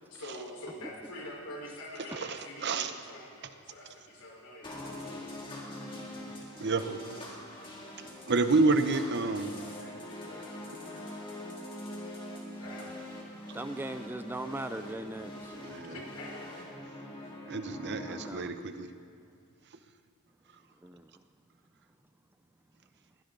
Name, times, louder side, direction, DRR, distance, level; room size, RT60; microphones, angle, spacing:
voice 1, 0.1-5.3 12.6-12.9 15.8-16.5, left 1 dB, 85° left, -2 dB, 4.4 m, -45 dB
voice 2, 2.3-2.9 6.6-7.2 8.3-9.5 15.6-15.9 17.5-18.9, right 3 dB, 50° right, 9 dB, 0.8 m, -29 dB
sound 1, 4.6-18.3, left 1 dB, 20° left, 2.4 m, -43 dB
voice 3, 9.2-11.7 12.5-13.7 16.1-17.3, left 1 dB, 65° left, -2 dB, 5.1 m, -54 dB
voice 4, 13.5-15.8 18.1-18.6 20.8-21.1, right 1 dB, 10° right, 9 dB, 0.4 m, -39 dB
21.0 x 17.5 x 3.9 m, 2.3 s
head